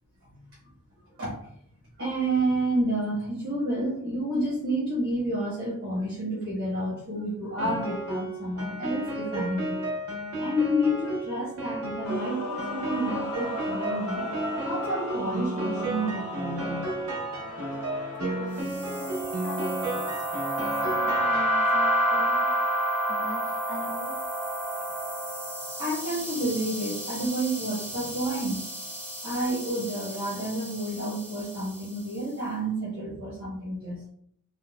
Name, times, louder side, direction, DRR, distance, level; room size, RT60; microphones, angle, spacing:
voice 1, 2.0-9.8 10.4-14.3 14.6-16.9 25.8-28.7 29.2-34.1, right 1 dB, 65° right, -7 dB, 1.0 m, -30 dB
Piano, 7.6-22.0, right 1 dB, 85° right, 0.7 m, -33 dB
Male singing / Female singing / Musical instrument, 12.0-18.6, left 1 dB, 85° left, 0.5 m, -37 dB
voice 2, 17.7-20.1 20.8-22.5 23.1-24.2, right 1 dB, 45° left, -5 dB, 0.9 m, -41 dB
sound 1, 18.6-32.0, right 1 dB, 5° right, 0.6 m, -30 dB
3.8 x 2.1 x 2.4 m, 0.67 s
head